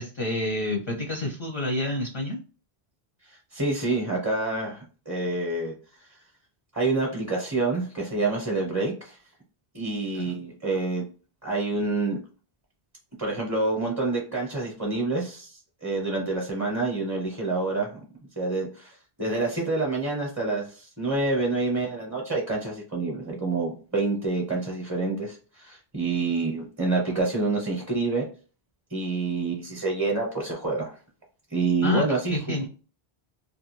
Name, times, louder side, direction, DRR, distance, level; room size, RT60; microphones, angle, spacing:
voice 1, 0.0-2.4 10.1-10.4 31.8-32.0 32.3-32.7, left 2 dB, 40° left, 0.5 m, -29 dB
voice 2, 3.3-5.7 6.7-9.2 9.7-11.0 11.4-12.2 13.2-18.0 18.4-28.2 28.9-30.9 31.5-32.6, right 3 dB, 20° right, 0.7 m, -27 dB
2.4 x 2.4 x 3.0 m
omnidirectional pair, 1.0 m